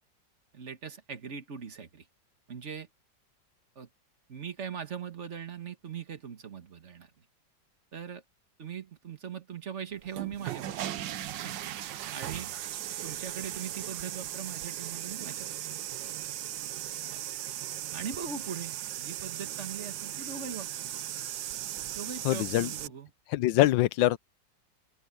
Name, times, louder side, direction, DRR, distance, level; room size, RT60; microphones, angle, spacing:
voice 1, 0.5-2.1 2.5-2.9 3.7-3.9 4.3-7.2 7.9-8.2 8.6-10.9 11.4-11.8 12.0-12.5 13.0-15.6 17.1-17.2 17.9-21.1 21.9-23.1, right 7 dB, 40° right, 1.6 m, -41 dB
sound 1, 10.0-22.9, right 12 dB, 80° right, 1.5 m, -37 dB
voice 2, 22.2-22.7 23.3-24.2, left 15 dB, 85° left, 1.3 m, -24 dB
open air
omnidirectional pair, 2.0 m